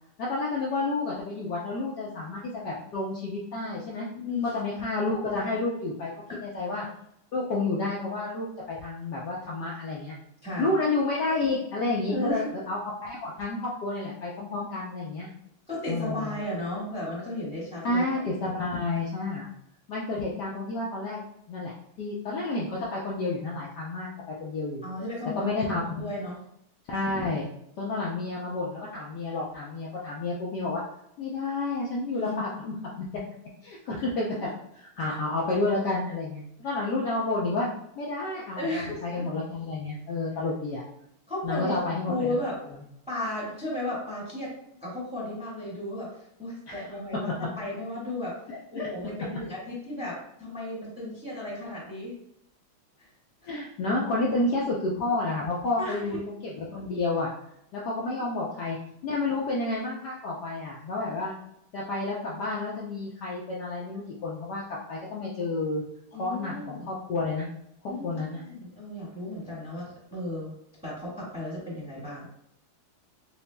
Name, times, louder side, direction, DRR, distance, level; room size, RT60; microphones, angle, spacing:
voice 1, 0.2-4.1 4.5-6.1 6.4-6.9 7.3-10.2 10.6-15.3 15.9-16.4 17.8-19.5 19.9-21.2 21.5-21.7 22.0-24.8 25.4-25.9 26.9-27.5 27.8-30.8 31.2-33.1 33.6-34.5 34.7-37.7 38.0-40.8 41.4-42.4 46.7-46.8 48.7-48.9 53.5-57.3 57.7-58.8 59.0-61.4 61.7-65.8 66.1-67.5 67.8-68.4, left 2 dB, 65° left, -5 dB, 1.1 m, -30 dB
voice 2, 4.1-4.6 6.3-6.4 10.4-10.7 12.1-12.5 15.7-18.5 24.8-25.5 25.9-26.4 32.1-32.3 38.6-39.3 41.3-41.8 42.1-42.5 43.1-44.5 44.8-46.1 46.4-48.4 48.7-52.1 53.4-53.6 55.8-56.0 66.1-66.9 67.8-70.5 70.8-72.3, left 1 dB, 5° right, -6 dB, 1.1 m, -34 dB
6.8 x 2.4 x 2.2 m, 0.75 s
omnidirectional pair, 2.3 m